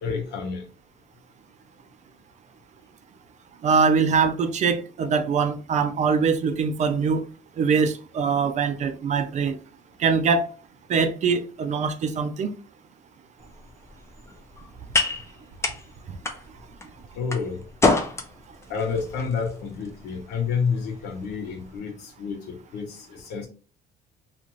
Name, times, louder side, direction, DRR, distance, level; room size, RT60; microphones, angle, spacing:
voice 1, 0.0-0.6 17.1-17.6 18.7-23.5, left 5 dB, 80° left, 0.9 m, -29 dB
voice 2, 3.6-7.2 7.6-9.6 10.0-10.4 10.9-12.5, right 5 dB, 45° right, 0.4 m, -23 dB
sound 1, 13.4-21.8, left 3 dB, 15° left, 0.4 m, -30 dB
2.5 x 2.4 x 2.9 m
cardioid pair, 110°, 17 cm